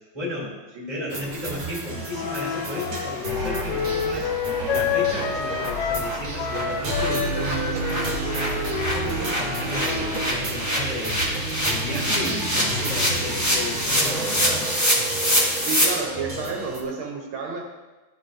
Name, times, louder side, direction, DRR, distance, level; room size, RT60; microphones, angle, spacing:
voice 1, 0.1-0.6 0.9-4.3 4.7-8.7 9.0-14.8, left 2 dB, 15° right, -7 dB, 2.5 m, -34 dB
voice 2, 0.7-1.1 15.6-17.6, right 4 dB, 80° right, 0 dB, 1.7 m, -31 dB
sound 1, 1.1-16.8, right 2 dB, 45° right, 1.1 m, -31 dB
Wind instrument woodwind instrument, 2.1-6.1 6.4-10.3, left 7 dB, 70° left, 1.1 m, -29 dB
sound 2, 2.9-3.0 3.3-3.4 3.7-3.8 4.2-4.3 4.6-4.8 5.1-5.2 5.5-5.7 5.9-15.8, equal, 10° left, 1.2 m, -26 dB
12.5 x 4.3 x 2.5 m, 1.2 s
omnidirectional pair, 2.2 m